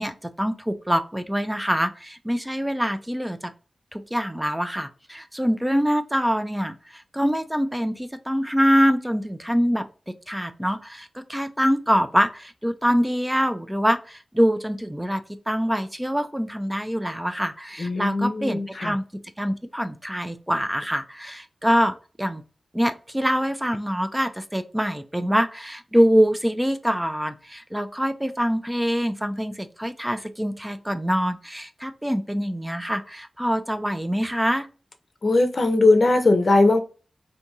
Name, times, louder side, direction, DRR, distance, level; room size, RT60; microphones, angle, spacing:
voice 1, 0.0-3.5 3.9-19.0 19.4-22.4 22.7-34.7, equal, 10° right, 0.4 m, -24 dB
voice 2, 17.8-18.9 35.2-36.8, left 2 dB, 60° left, 0.6 m, -19 dB
3.5 x 2.7 x 2.7 m
cardioid pair, 50°, 0 cm